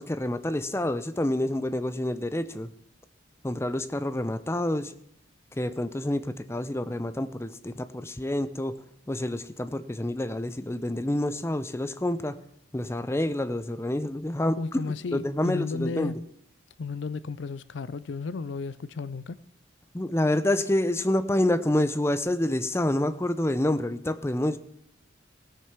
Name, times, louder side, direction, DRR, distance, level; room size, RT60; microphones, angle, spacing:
voice 1, 0.0-2.7 3.4-4.9 5.5-8.8 9.1-12.4 12.7-14.6 15.1-16.1 19.9-24.6, left 1 dB, 15° left, 0.5 m, -28 dB
voice 2, 14.6-16.2 16.8-19.4, left 4 dB, 70° left, 0.4 m, -33 dB
17.0 x 6.4 x 6.0 m
head